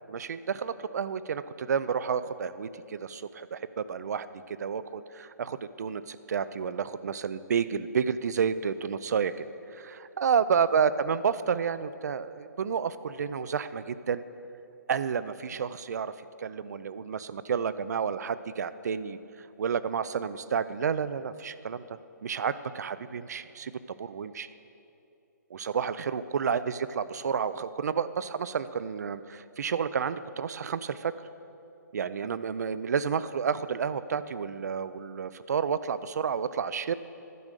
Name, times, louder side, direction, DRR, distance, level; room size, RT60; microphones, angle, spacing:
voice 1, 0.2-9.3 9.7-14.2 14.9-16.1 16.4-19.2 19.6-21.8 22.2-23.7 24.0-24.5 25.5-31.1 31.9-36.9, right 6 dB, 60° right, 15 dB, 0.4 m, -30 dB
11.0 x 6.2 x 6.7 m, 2.8 s
hypercardioid pair, 170°, 10 cm